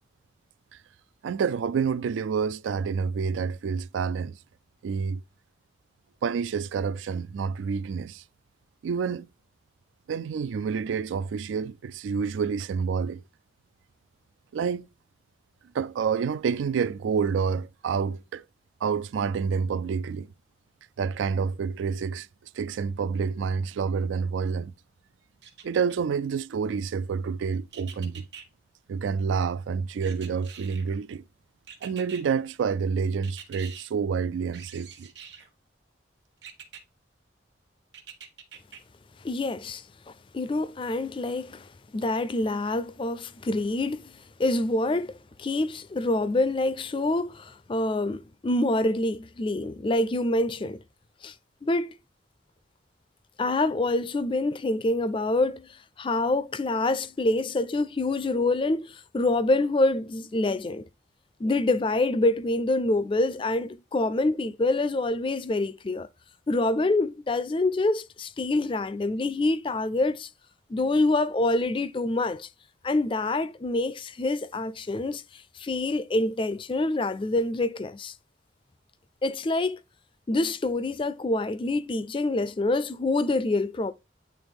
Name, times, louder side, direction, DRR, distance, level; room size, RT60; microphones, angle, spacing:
voice 1, 1.2-4.4 4.8-5.2 6.2-8.2 8.8-9.3 10.1-13.2 14.5-14.9 15.7-18.4 18.8-20.3 21.0-22.3 22.6-24.7 25.6-28.3 28.9-31.2 31.8-35.1, right 6 dB, 85° right, 0.3 m, -28 dB
sound 1, 25.4-26.2 27.7-28.5 30.0-31.0 31.7-32.2 33.2-33.9 34.5-35.5 36.4-36.8 37.9-38.8 39.3-39.4, right 7 dB, 65° right, 1.2 m, -45 dB
voice 2, 39.2-39.8 40.3-50.8 51.2-51.3 51.6-51.9 53.4-60.8 61.4-66.1 66.5-70.3 70.7-72.5 72.8-78.1 79.2-79.8 80.3-83.9, left 2 dB, 25° left, 0.4 m, -26 dB
8.9 x 3.4 x 3.5 m
head